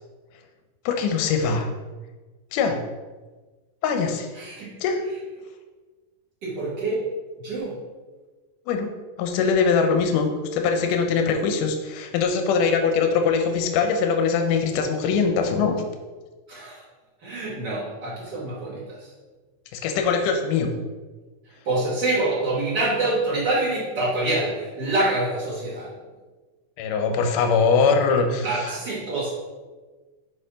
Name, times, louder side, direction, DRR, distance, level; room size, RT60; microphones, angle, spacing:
voice 1, 0.9-1.7 2.5-2.8 3.8-4.3 4.8-5.0 8.7-8.9 9.2-15.8 19.7-20.7 26.8-28.7, left 5 dB, 80° left, 4 dB, 1.9 m, -22 dB
voice 2, 4.3-4.8 6.4-7.0 7.4-7.8 16.5-16.8 17.2-19.1 21.6-25.9 28.4-29.3, right 2 dB, 85° right, -7 dB, 0.9 m, -26 dB
6.9 x 4.3 x 5.0 m, 1.3 s
omnidirectional pair, 4.6 m